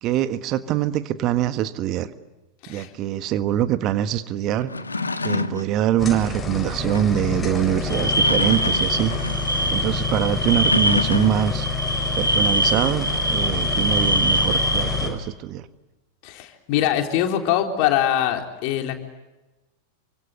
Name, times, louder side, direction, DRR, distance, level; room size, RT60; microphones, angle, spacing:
voice 1, 0.0-2.1 2.7-4.7 5.2-9.1 9.7-11.7 12.1-15.7, right 11 dB, 35° right, 12 dB, 1.5 m, -24 dB
sound 1, 4.6-5.7 6.9-7.2 8.0-9.5 10.5-11.6, left 3 dB, 80° left, 1.5 m, -28 dB
sound 2, 6.0-15.1, left 4 dB, 15° left, 7.6 m, -27 dB
sound 3, 7.9-15.1, equal, 85° right, 5.3 m, -24 dB
voice 2, 16.2-18.9, left 11 dB, 45° left, 4 dB, 3.9 m, -23 dB
28.5 x 25.5 x 8.1 m, 1.1 s
figure-of-eight pair, 90°, 0 cm